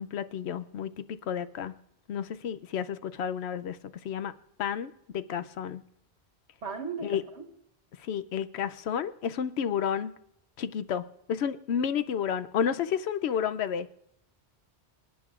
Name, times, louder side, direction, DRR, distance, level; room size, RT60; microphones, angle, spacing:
voice 1, 0.0-1.7 2.1-4.3 4.6-5.8 7.0-7.2 8.0-10.1 10.6-11.0 11.3-14.0, left 8 dB, 75° left, 12 dB, 0.9 m, -31 dB
voice 2, 6.6-7.4, right 5 dB, 85° right, 3 dB, 1.6 m, -36 dB
27.5 x 9.2 x 2.4 m, 0.75 s
omnidirectional pair, 1.1 m